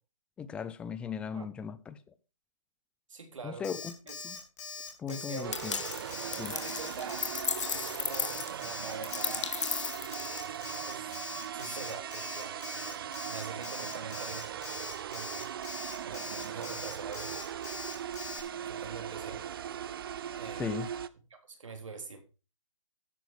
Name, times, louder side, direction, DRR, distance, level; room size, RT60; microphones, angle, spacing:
voice 1, 0.4-2.0 3.4-3.9 4.2-4.4 5.0-5.8 6.4-6.5 20.6-20.9, left 7 dB, 5° left, 0.5 m, -37 dB
voice 2, 3.1-3.7 4.1-4.2 5.1-5.8 6.4-7.4 7.7-9.6 10.6-14.6 15.1-15.5 16.0-17.3 18.6-19.4 20.4-20.7 21.5-22.2, right 4 dB, 70° right, 3.6 m, -44 dB
Alarm, 3.6-18.4, left 5 dB, 35° left, 3.6 m, -42 dB
sound 1, 5.4-21.1, right 9 dB, 45° right, 0.7 m, -39 dB
sound 2, 5.5-10.7, left 7 dB, 65° left, 0.8 m, -36 dB
13.0 x 8.0 x 4.7 m
hypercardioid pair, 150°, 17 cm